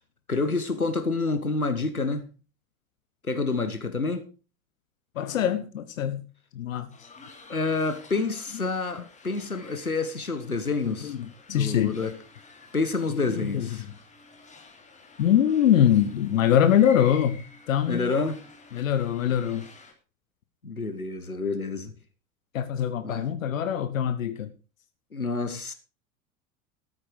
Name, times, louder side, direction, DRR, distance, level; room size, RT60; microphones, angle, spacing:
voice 1, 0.3-2.3 3.2-4.2 7.5-11.1 11.5-12.1 12.7-13.8 17.9-18.4 20.6-21.9 23.0-23.2 25.1-25.7, left 3 dB, 90° left, 1.5 m, -28 dB
voice 2, 5.2-6.2 6.5-6.9 10.9-12.0 13.1-13.7 15.2-18.1 18.7-19.7 22.5-24.5, left 10 dB, 65° left, 1.1 m, -23 dB
sound 1, 6.9-19.9, left 4 dB, 15° left, 3.0 m, -50 dB
13.5 x 8.9 x 4.8 m
figure-of-eight pair, 85°, 42 cm